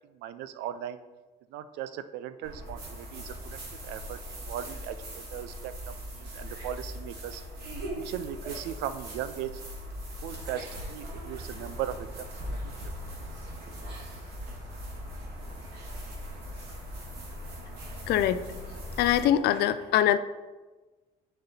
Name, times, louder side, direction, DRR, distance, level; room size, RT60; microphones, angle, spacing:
voice 1, 0.2-1.0 1.5-3.6 3.8-7.4 7.9-9.5 10.2-12.3, right 10 dB, 90° right, 12 dB, 0.4 m, -38 dB
sound 1, 2.4-19.2, equal, 75° right, 2.1 m, -40 dB
voice 2, 18.1-18.4 19.0-20.2, left 11 dB, 75° left, 13 dB, 0.4 m, -23 dB
6.5 x 4.3 x 4.1 m, 1.2 s
cardioid pair, 110°, 17 cm